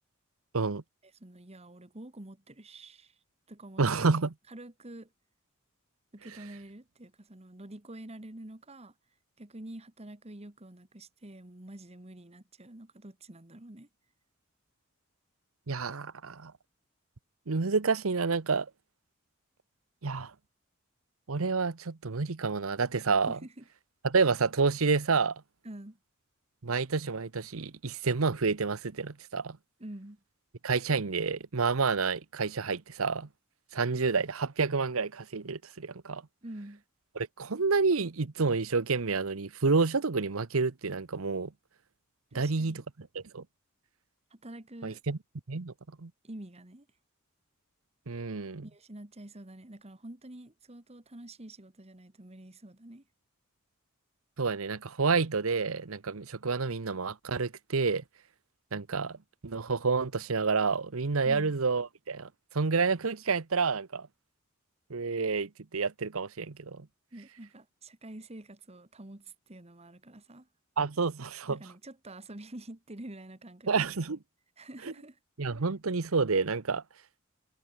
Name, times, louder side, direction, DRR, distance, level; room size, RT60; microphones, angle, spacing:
voice 1, 1.2-3.2 3.5-4.1 4.5-5.1 6.1-8.9 9.4-13.9 23.3-23.6 25.6-26.0 29.8-30.2 36.4-36.8 42.3-42.8 44.3-45.0 46.2-46.9 48.6-53.0 61.2-61.5 67.1-70.5 71.5-74.0 74.6-75.2, right 1 dB, 30° right, 1.7 m, -47 dB
voice 2, 3.8-4.3 15.7-16.5 17.5-18.7 20.0-20.3 21.3-23.4 24.0-25.4 26.6-29.6 30.6-33.3 33.7-36.2 37.2-41.5 42.3-42.8 43.1-43.4 44.8-45.2 45.5-45.7 46.0-46.1 48.1-48.6 54.4-58.0 58.7-59.2 59.4-62.3 62.5-64.1 64.9-66.9 70.8-71.6 73.7-74.2 75.4-76.8, right 4 dB, 80° right, 0.9 m, -29 dB
head